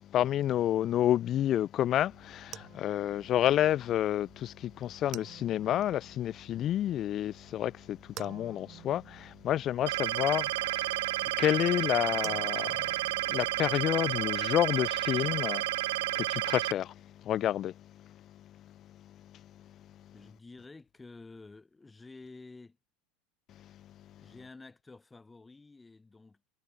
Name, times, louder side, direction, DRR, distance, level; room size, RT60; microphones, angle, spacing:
voice 1, 0.0-19.7 20.0-20.1 23.6-23.8 24.2-24.3, left 12 dB, 40° left, 0.6 m, -30 dB
sound 1, 1.9-15.5, right 14 dB, 45° right, 2.1 m, -52 dB
sound 2, 9.9-16.7, right 17 dB, 80° right, 0.7 m, -31 dB
voice 2, 20.1-22.8 24.2-26.5, left 3 dB, 15° left, 7.0 m, -51 dB
supercardioid pair, 110°, 0 cm